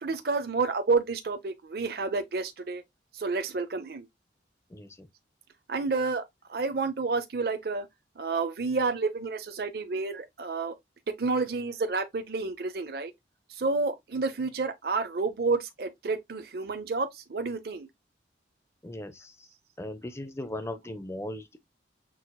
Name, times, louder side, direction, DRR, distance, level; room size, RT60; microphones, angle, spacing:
voice 1, 0.0-2.8 3.1-4.1 5.7-6.2 6.5-7.9 8.2-10.7 11.1-13.1 13.5-17.9, right 4 dB, 55° right, 0.5 m, -30 dB
voice 2, 4.7-5.1 18.8-19.5 19.8-21.6, left 1 dB, 15° left, 0.6 m, -38 dB
6.2 x 2.8 x 2.2 m
head